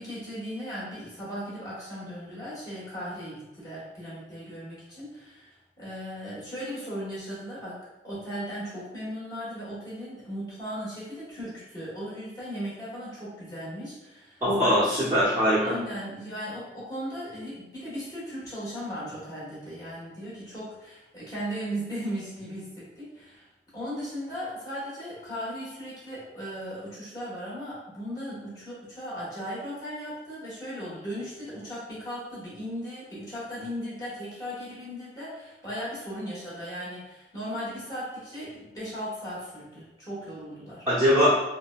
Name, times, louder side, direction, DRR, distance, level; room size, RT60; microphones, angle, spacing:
voice 1, 0.0-5.5 5.8-7.8 8.0-15.1 15.6-23.5 23.7-40.9, equal, 20° left, -9 dB, 1.3 m, -37 dB
voice 2, 14.4-15.8 40.9-41.3, equal, 15° right, -12 dB, 0.6 m, -21 dB
3.7 x 2.1 x 2.3 m, 0.97 s
head